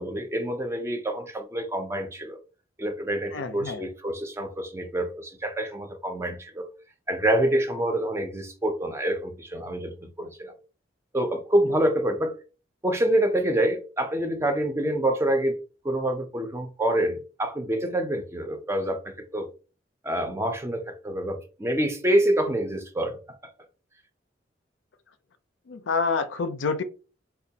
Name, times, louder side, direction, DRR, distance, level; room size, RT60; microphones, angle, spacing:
voice 1, 0.0-2.4 2.8-6.7 7.1-10.6 11.1-12.4 12.8-19.5 20.0-23.2, right 1 dB, 15° right, 0.5 m, -27 dB
voice 2, 3.3-3.9 11.7-11.8 25.7-26.8, left 4 dB, 85° left, 0.5 m, -28 dB
4.2 x 2.2 x 2.7 m
head